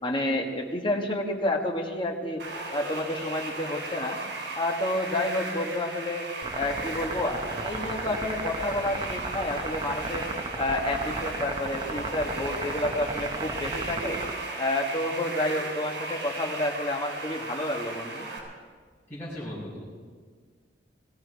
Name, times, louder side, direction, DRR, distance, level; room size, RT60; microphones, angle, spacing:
voice 1, 0.0-2.4 2.7-4.2 4.5-6.3 6.5-10.3 10.6-14.2 14.6-18.3, left 1 dB, 30° left, 2 dB, 1.6 m, -29 dB
sound 1, 2.4-18.4, right 2 dB, 90° right, 3.5 m, -36 dB
sound 2, 6.4-14.3, right 3 dB, 30° right, 0.8 m, -35 dB
voice 2, 19.1-19.8, equal, 15° left, -9 dB, 5.7 m, -37 dB
19.5 x 15.0 x 4.7 m, 1.5 s
head